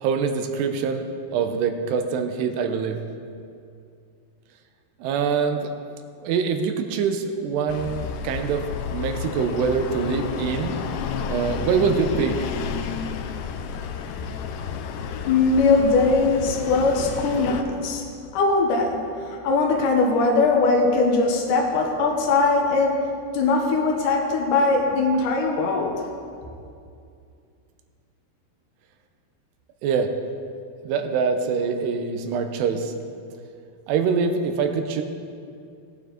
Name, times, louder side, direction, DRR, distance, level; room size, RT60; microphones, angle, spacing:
voice 1, 0.0-3.0 5.0-5.7 6.2-10.7 11.3-12.4 29.8-30.1 30.8-32.9 33.9-35.0, right 6 dB, 85° right, 6 dB, 2.8 m, -24 dB
sound 1, 7.7-17.6, left 7 dB, 90° left, 2.8 m, -31 dB
voice 2, 15.3-18.0 18.3-23.0 23.3-25.9, left 3 dB, 70° left, 0 dB, 2.1 m, -21 dB
17.0 x 9.2 x 3.9 m, 2.4 s
omnidirectional pair, 4.9 m